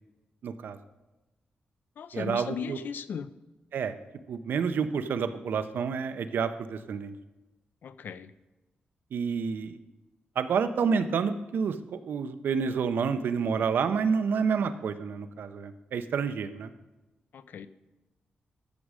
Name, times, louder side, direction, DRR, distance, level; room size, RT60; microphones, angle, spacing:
voice 1, 0.4-0.8 2.1-2.8 3.7-4.0 4.3-7.2 9.1-9.8 10.4-16.7, right 6 dB, 80° right, 10 dB, 0.7 m, -29 dB
voice 2, 2.0-3.3 7.8-8.3 17.3-17.7, left 7 dB, 70° left, 14 dB, 0.5 m, -37 dB
13.5 x 6.2 x 4.9 m, 1.1 s
wide cardioid pair, 160°, 3 cm